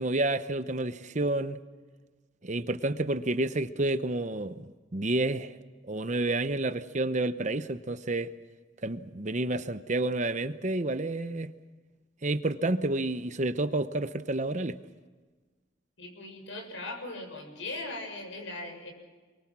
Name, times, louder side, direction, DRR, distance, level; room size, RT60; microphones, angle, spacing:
voice 1, 0.0-1.6 2.4-4.6 4.9-5.5 5.9-8.3 8.8-11.5 12.2-14.8, right 2 dB, 35° right, 0.9 m, -29 dB
voice 2, 16.0-18.9, left 2 dB, 75° left, 6.9 m, -39 dB
28.5 x 23.0 x 6.1 m
head